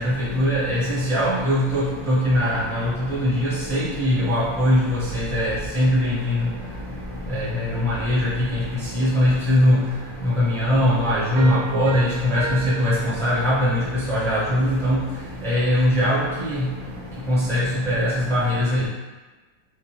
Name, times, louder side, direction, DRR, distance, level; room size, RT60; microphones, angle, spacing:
voice 1, 0.0-2.8 3.1-6.4 7.3-7.5 7.8-8.3 8.9-9.8 10.2-12.9 13.2-13.8 14.1-15.0 15.4-16.7 17.3-18.9, equal, 5° left, -10 dB, 0.4 m, -21 dB
Piano, 11.4-13.9, right 4 dB, 70° right, 1.0 m, -35 dB
3.6 x 2.4 x 3.0 m, 1.2 s
omnidirectional pair, 2.0 m